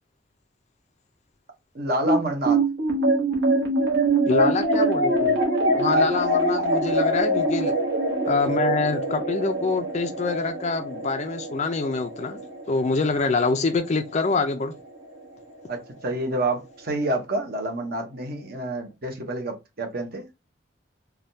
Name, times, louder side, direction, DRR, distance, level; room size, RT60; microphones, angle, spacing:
voice 1, 1.7-2.6 5.8-6.1 6.6-6.7 15.7-20.3, right 1 dB, 50° right, 0.8 m, -28 dB
sound 1, 2.1-14.7, right 1 dB, 65° right, 1.1 m, -24 dB
voice 2, 4.2-5.4 5.8-7.7 8.3-12.4 12.7-14.7, left 3 dB, 35° left, 0.4 m, -25 dB
3.4 x 2.2 x 2.6 m
head